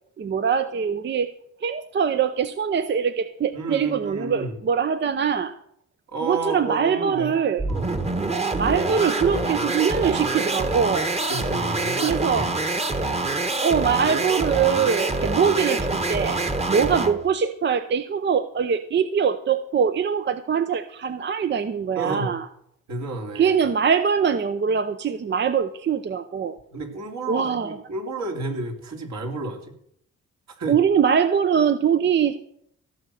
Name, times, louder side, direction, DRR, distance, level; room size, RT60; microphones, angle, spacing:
voice 1, 0.2-1.3 1.6-5.5 6.2-7.7 8.4-11.1 12.0-12.5 13.6-16.4 16.7-22.4 23.3-26.6 27.3-27.8 30.7-32.4, right 7 dB, 35° right, 11 dB, 0.7 m, -23 dB
voice 2, 3.5-4.5 6.1-7.4 7.7-7.9 11.3-12.5 21.9-22.3 22.9-23.6 26.7-29.7 30.6-30.8, right 3 dB, 65° right, 3 dB, 3.1 m, -31 dB
sound 1, 7.6-17.2, right 2 dB, 20° right, 1.4 m, -25 dB
15.5 x 6.5 x 7.7 m, 0.69 s
cardioid pair, 90°, 30 cm